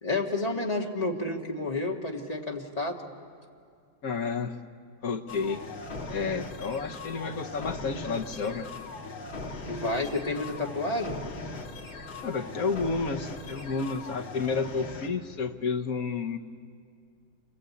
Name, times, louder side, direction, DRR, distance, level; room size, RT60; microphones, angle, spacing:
voice 1, 0.0-3.1 9.7-11.2, left 2 dB, 20° left, 0 dB, 1.8 m, -30 dB
voice 2, 4.0-4.6 5.0-5.6 6.1-8.7 12.2-16.4, left 4 dB, 50° left, 5 dB, 1.4 m, -31 dB
sound 1, 5.3-15.1, left 3 dB, 80° left, 2.9 m, -40 dB
28.0 x 23.5 x 8.5 m, 2.3 s
omnidirectional pair, 2.1 m